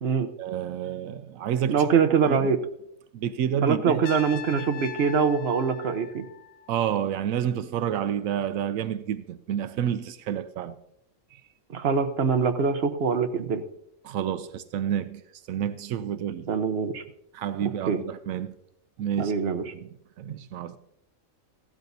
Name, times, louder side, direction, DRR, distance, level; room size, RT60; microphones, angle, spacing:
voice 1, 0.4-1.9 2.3-2.5 3.1-4.2 4.5-4.6 6.7-10.8 11.3-11.4 14.0-15.2 15.5-16.5 17.3-18.5 19.0-19.3 19.7-19.9 20.2-20.8, right 9 dB, 85° right, 1.0 m, -29 dB
voice 2, 1.7-2.6 3.6-6.2 11.7-13.6 16.5-17.0 17.9-18.0 19.2-19.6 20.3-20.4, right 6 dB, 50° right, 1.1 m, -24 dB
Trumpet, 4.0-7.0, left 10 dB, 80° left, 1.0 m, -41 dB
16.0 x 13.0 x 2.7 m
omnidirectional pair, 1.4 m